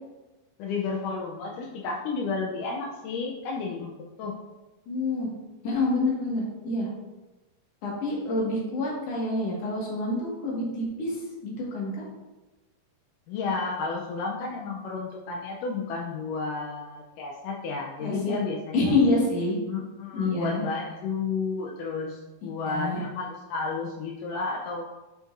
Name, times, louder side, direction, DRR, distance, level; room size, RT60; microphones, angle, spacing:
voice 1, 0.6-4.4 13.3-18.9 19.7-24.8, left 4 dB, 80° left, -1 dB, 1.9 m, -32 dB
voice 2, 4.9-5.3 5.6-6.9 7.8-11.9 18.0-18.4 18.7-19.6 20.1-20.6 22.6-23.0, left 2 dB, 50° left, -3 dB, 2.4 m, -27 dB
7.9 x 6.4 x 2.6 m, 1.1 s
omnidirectional pair, 4.3 m